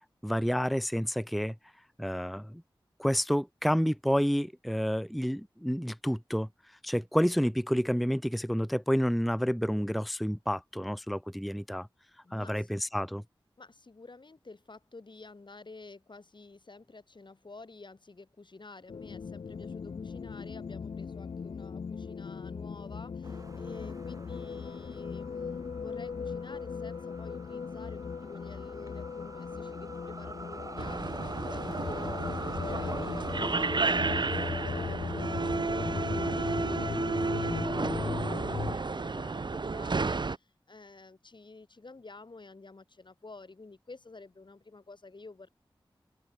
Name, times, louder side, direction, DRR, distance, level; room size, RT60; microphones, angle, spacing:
voice 1, 0.2-1.5 2.0-2.6 3.0-6.5 6.8-11.9 12.3-13.2, equal, ahead, 0.6 m, -29 dB
voice 2, 12.2-12.7 13.6-45.5, left 3 dB, 60° left, 6.8 m, -50 dB
sound 1, 18.9-38.7, left 5 dB, 90° left, 0.6 m, -38 dB
sound 2, 23.2-33.5, right 2 dB, 40° right, 2.5 m, -46 dB
sound 3, 30.8-40.4, right 4 dB, 60° right, 0.9 m, -32 dB
open air
cardioid pair, 45°, 9 cm